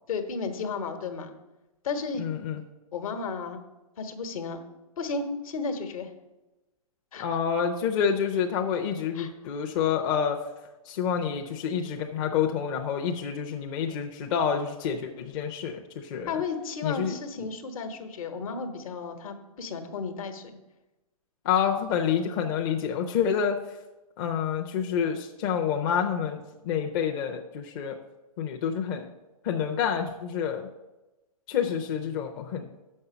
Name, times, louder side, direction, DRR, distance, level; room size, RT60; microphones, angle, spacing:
voice 1, 0.1-1.3 1.8-2.2 2.9-3.6 4.0-4.6 5.0-6.1 7.1-7.3 9.1-9.3 16.3-20.6, left 4 dB, 65° left, 6 dB, 1.3 m, -33 dB
voice 2, 2.2-2.6 7.2-10.4 10.8-16.3 16.8-17.5 21.4-23.6 24.2-28.0 28.4-29.1 29.4-30.7 31.5-32.7, left 7 dB, 40° left, 2 dB, 0.7 m, -28 dB
6.8 x 5.5 x 6.9 m, 1.0 s
hypercardioid pair, 125°, 19 cm